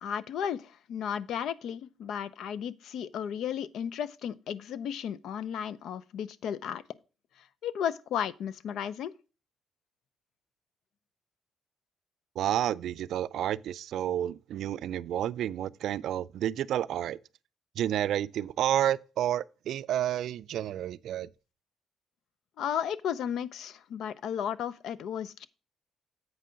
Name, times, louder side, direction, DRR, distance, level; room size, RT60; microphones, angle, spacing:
voice 1, 0.0-6.8 7.6-9.1 22.6-25.5, left 8 dB, 75° left, 0.6 m, -34 dB
voice 2, 12.4-17.2 17.8-21.3, right 11 dB, 75° right, 0.3 m, -30 dB
8.1 x 5.5 x 5.1 m
cardioid pair, 90°, 0 cm